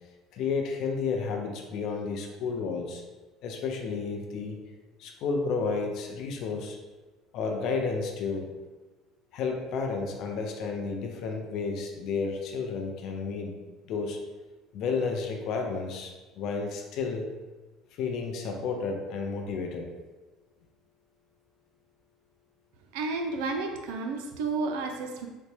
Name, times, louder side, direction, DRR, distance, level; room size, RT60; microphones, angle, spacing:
voice 1, 0.3-3.0 3.4-4.6 5.0-6.8 7.3-8.5 9.3-13.6 13.9-14.2 14.7-17.3 17.9-19.9, left 4 dB, 65° left, 2 dB, 0.5 m, -31 dB
voice 2, 22.9-25.3, right 3 dB, 85° right, 3 dB, 0.4 m, -31 dB
3.9 x 2.1 x 3.2 m, 1.2 s
supercardioid pair, 100°, 0 cm